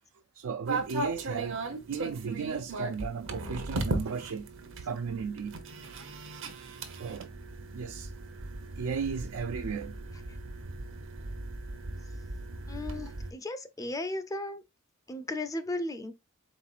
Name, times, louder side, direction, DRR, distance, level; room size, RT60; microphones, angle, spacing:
voice 1, 0.3-1.6 1.9-4.5 4.8-5.6 6.9-7.3 7.7-8.1 8.8-10.0, right 5 dB, 75° right, 0.4 m, -35 dB
sound 1, 0.7-13.3, right 2 dB, 60° right, 0.8 m, -38 dB
voice 2, 12.7-14.6 15.1-16.1, left 2 dB, 15° left, 0.4 m, -35 dB
4.3 x 4.0 x 2.4 m
head